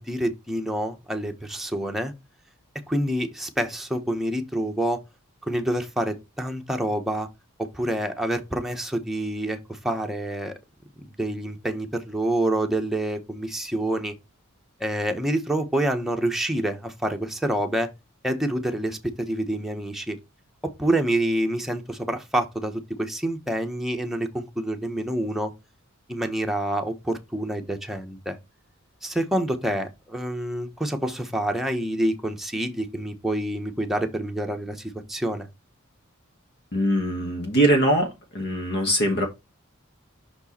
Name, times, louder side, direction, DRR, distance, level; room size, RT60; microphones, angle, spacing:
voice 1, 0.0-2.1 2.9-5.0 5.4-7.3 7.6-10.5 11.0-14.1 14.8-17.9 18.2-20.2 20.8-25.5 26.1-28.4 29.0-35.5, right 1 dB, ahead, 1.0 m, -27 dB
voice 2, 36.7-39.3, right 1 dB, 55° left, 1.6 m, -22 dB
6.0 x 4.5 x 4.3 m
head